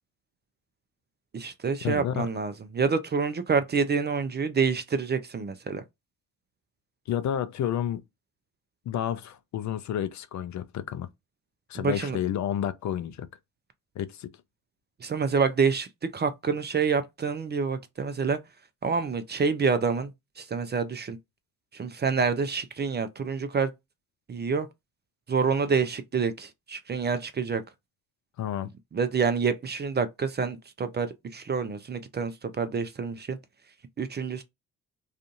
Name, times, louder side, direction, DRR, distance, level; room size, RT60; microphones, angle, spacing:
voice 1, 1.3-5.8 11.7-12.2 15.0-18.4 18.8-21.2 21.7-23.7 24.3-24.7 25.3-27.6 28.9-33.4 34.0-34.4, right 5 dB, 25° right, 0.5 m, -27 dB
voice 2, 1.8-2.3 7.1-8.0 8.9-11.1 11.7-13.3 14.0-14.3 28.4-28.7, left 10 dB, 45° left, 0.4 m, -30 dB
2.5 x 2.5 x 2.4 m
hypercardioid pair, 45°, 41 cm